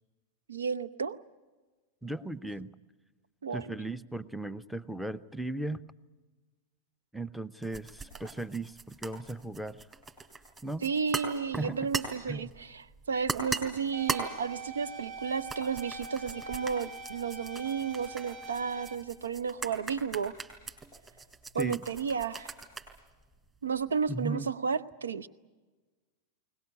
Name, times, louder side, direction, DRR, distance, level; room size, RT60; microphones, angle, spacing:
voice 1, 0.5-1.2 3.4-3.8 10.8-20.4 21.5-22.5 23.6-25.3, right 6 dB, 70° right, 17 dB, 0.7 m, -33 dB
voice 2, 2.0-2.7 3.5-5.8 7.1-9.9 10.6-10.9 11.6-11.9 12.3-12.5 21.6-21.8 24.1-24.5, right 2 dB, ahead, 10 dB, 0.7 m, -36 dB
sound 1, 7.6-24.1, right 3 dB, 20° right, 3.7 m, -40 dB
sound 2, 13.9-19.0, right 2 dB, 45° right, 4.3 m, -44 dB
22.0 x 19.5 x 9.7 m, 1.3 s
figure-of-eight pair, 90°, 0 cm